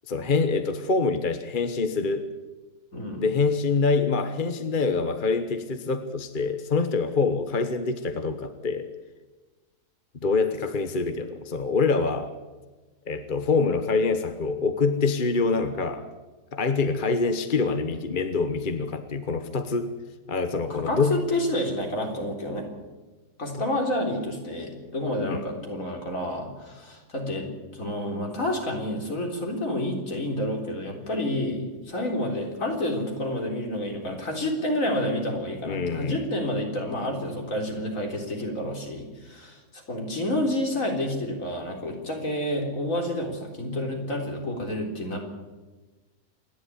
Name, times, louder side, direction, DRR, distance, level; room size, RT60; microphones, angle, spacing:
voice 1, 0.1-2.3 3.2-8.9 10.2-12.3 13.1-16.0 16.5-19.9 20.3-21.2 23.6-23.7 25.2-25.4 35.6-36.1, left 4 dB, 35° left, 9 dB, 1.1 m, -25 dB
voice 2, 2.9-3.3 20.7-22.7 23.4-45.2, left 1 dB, 60° left, 1 dB, 4.3 m, -29 dB
27.0 x 11.5 x 9.7 m, 1.2 s
omnidirectional pair, 1.6 m